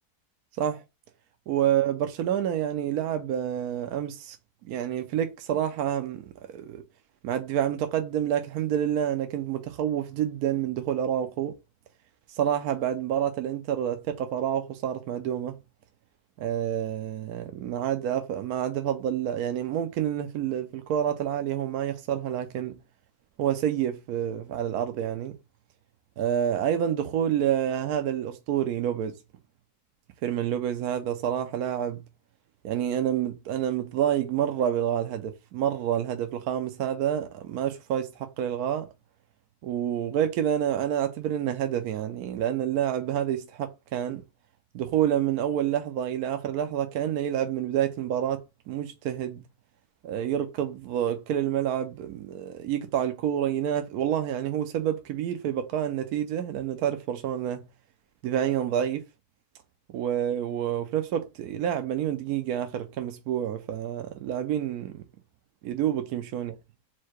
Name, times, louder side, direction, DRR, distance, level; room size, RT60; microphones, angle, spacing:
voice 1, 1.5-4.4 4.7-6.8 7.2-11.5 12.3-15.6 16.4-22.7 23.4-25.3 26.2-29.1 30.2-32.0 32.6-38.9 39.6-44.2 44.7-48.4 48.7-49.4 50.0-57.6 58.2-59.0 59.9-65.0 65.6-66.5, right 10 dB, 75° right, 1.1 m, -28 dB
4.6 x 2.2 x 4.4 m
omnidirectional pair, 1.7 m